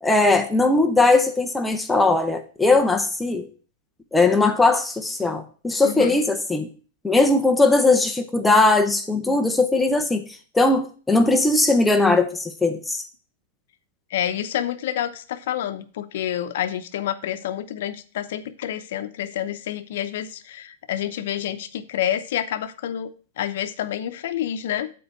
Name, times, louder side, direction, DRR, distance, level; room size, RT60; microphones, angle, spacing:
voice 1, 0.0-3.5 4.1-6.7 7.0-10.2 10.5-13.0, left 2 dB, 5° left, 7 dB, 0.7 m, -19 dB
voice 2, 5.8-6.2 14.1-24.9, left 11 dB, 65° left, 11 dB, 0.8 m, -28 dB
7.8 x 4.6 x 6.7 m, 0.39 s
supercardioid pair, 155°, 0 cm